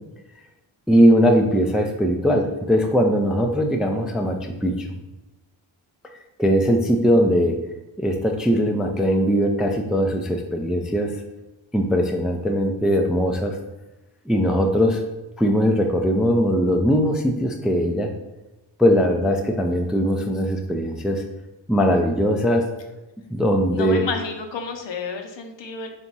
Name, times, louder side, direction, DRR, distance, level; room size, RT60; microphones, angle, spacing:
voice 1, 0.9-4.9 6.4-7.6 8.0-11.2 11.7-13.6 14.3-15.0 15.4-18.1 18.8-21.2 21.7-22.7 23.3-24.1, equal, ahead, 3 dB, 0.3 m, -20 dB
voice 2, 23.7-25.9, left 4 dB, 60° left, 5 dB, 0.7 m, -31 dB
3.5 x 2.9 x 3.9 m, 1.0 s
cardioid pair, 65°, 49 cm